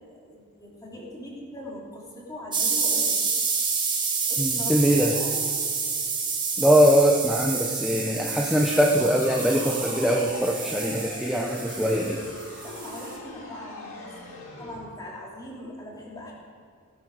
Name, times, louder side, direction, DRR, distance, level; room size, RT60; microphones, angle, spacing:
voice 1, 0.1-3.2 4.3-5.5 12.6-16.3, left 1 dB, 15° left, -4 dB, 3.4 m, -40 dB
sound 1, 2.5-13.1, right 5 dB, 20° right, 1.6 m, -29 dB
voice 2, 4.4-5.1 6.6-12.2, equal, ahead, -1 dB, 0.9 m, -22 dB
sound 2, 7.4-14.9, left 2 dB, 65° left, 2.3 m, -41 dB
17.0 x 11.0 x 5.0 m, 2.2 s
head